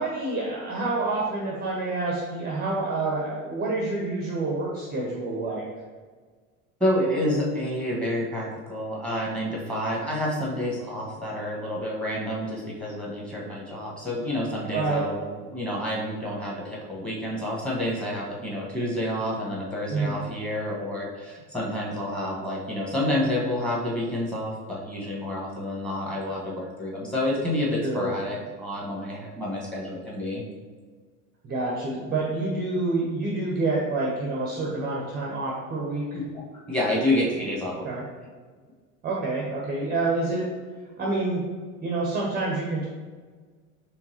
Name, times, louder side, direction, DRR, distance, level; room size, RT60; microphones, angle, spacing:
voice 1, 0.0-5.6 11.0-11.1 14.7-15.0 19.9-20.2 27.8-28.1 31.4-36.2 37.8-38.0 39.0-40.5 41.0-41.4 41.8-42.9, right 3 dB, 20° right, -3 dB, 0.7 m, -28 dB
voice 2, 6.8-30.4 36.3-36.4 36.7-37.9, left 1 dB, ahead, -4 dB, 1.3 m, -29 dB
4.5 x 3.5 x 2.8 m, 1.5 s
figure-of-eight pair, 75°, 45 cm